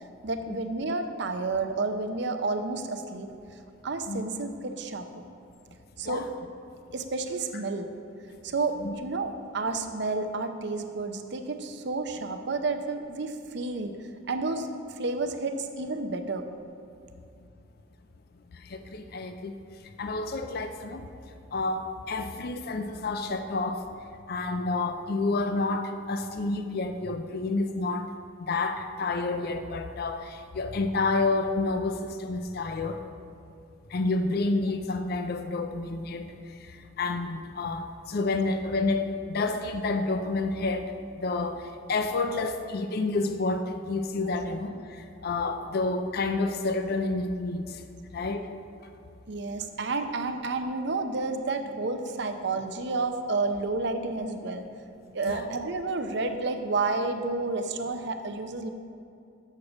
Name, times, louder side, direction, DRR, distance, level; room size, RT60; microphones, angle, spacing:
voice 1, 0.2-3.3 3.8-5.3 6.0-6.3 6.9-7.9 8.4-14.0 14.3-14.7 15.0-16.5 49.3-54.7 55.1-58.7, right 3 dB, 60° right, 7 dB, 0.6 m, -30 dB
voice 2, 18.5-19.5 19.8-21.1 21.5-23.8 24.3-28.1 28.4-33.0 33.9-47.8 48.1-48.5 55.2-55.5, left 3 dB, 50° left, 8 dB, 0.4 m, -29 dB
6.6 x 6.4 x 7.1 m, 2.6 s
head